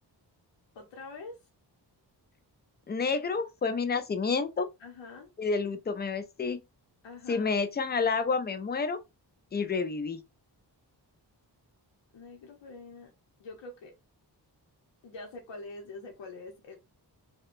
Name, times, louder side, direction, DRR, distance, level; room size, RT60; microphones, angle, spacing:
voice 1, 0.7-1.4 4.8-5.3 7.0-7.5 12.1-13.1 13.4-13.9 15.0-16.8, left 3 dB, 80° left, 0.7 m, -45 dB
voice 2, 2.9-4.7 5.4-6.6 7.3-9.0 9.5-10.2, left 4 dB, 25° left, 0.4 m, -29 dB
2.7 x 2.1 x 2.4 m
wide cardioid pair, 85°, 43 cm